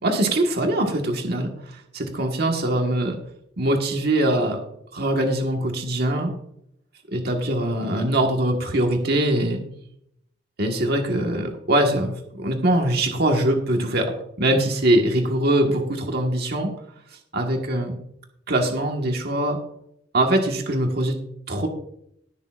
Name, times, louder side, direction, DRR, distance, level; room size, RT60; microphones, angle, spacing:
voice 1, 0.0-3.2 3.6-4.6 4.9-6.3 7.1-9.6 10.6-16.7 17.3-17.9 18.5-19.6 20.1-21.2 21.5-21.7, right 1 dB, 60° right, 2 dB, 1.6 m, -22 dB
20.5 x 6.8 x 2.5 m, 0.73 s
head